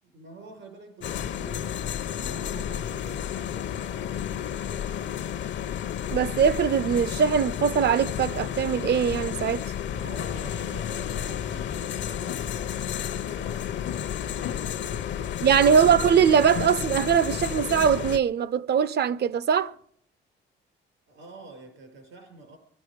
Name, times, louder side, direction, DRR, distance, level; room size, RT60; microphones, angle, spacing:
voice 1, 0.0-5.2 9.9-13.7 14.2-15.8 21.1-22.6, right 3 dB, 80° right, 5.6 m, -47 dB
sound 1, 1.0-18.2, left 9 dB, 65° left, 0.7 m, -31 dB
voice 2, 6.1-9.7 15.4-19.7, right 7 dB, 55° right, 0.7 m, -22 dB
23.0 x 12.0 x 5.1 m
cardioid pair, 90°, 20 cm